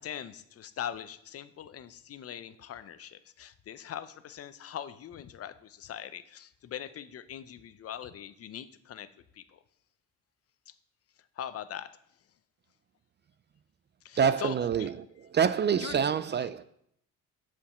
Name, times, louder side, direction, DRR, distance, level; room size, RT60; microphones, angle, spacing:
voice 1, 0.0-9.1 9.3-9.6 10.7-10.8 11.4-11.9 14.0-14.9 15.8-16.0 16.4-16.5, left 9 dB, 50° left, 0.6 m, -41 dB
voice 2, 14.1-14.9 15.3-16.6, right 7 dB, 35° right, 0.4 m, -26 dB
7.0 x 5.1 x 7.1 m
cardioid pair, 90°, 30 cm